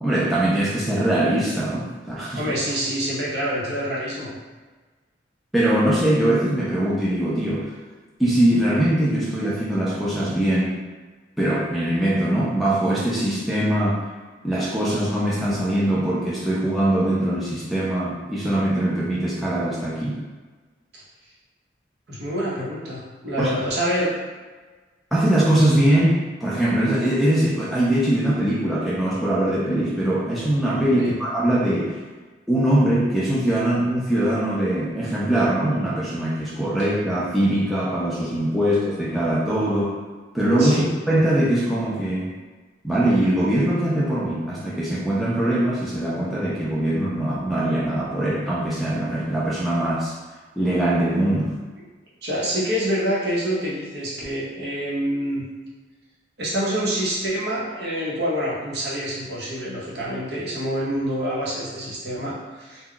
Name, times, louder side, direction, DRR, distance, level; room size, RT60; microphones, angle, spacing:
voice 1, 0.0-2.4 5.5-7.7 8.2-10.8 11.4-14.0 14.4-20.2 23.4-23.5 25.1-31.9 32.5-40.0 40.3-42.3 42.8-50.1 50.6-51.5, right 1 dB, ahead, -8 dB, 0.4 m, -22 dB
voice 2, 2.3-4.4 22.1-24.1 30.9-31.2 40.6-40.9 52.2-55.4 56.4-62.8, equal, 60° right, -6 dB, 0.8 m, -26 dB
2.2 x 2.1 x 3.7 m, 1.3 s
head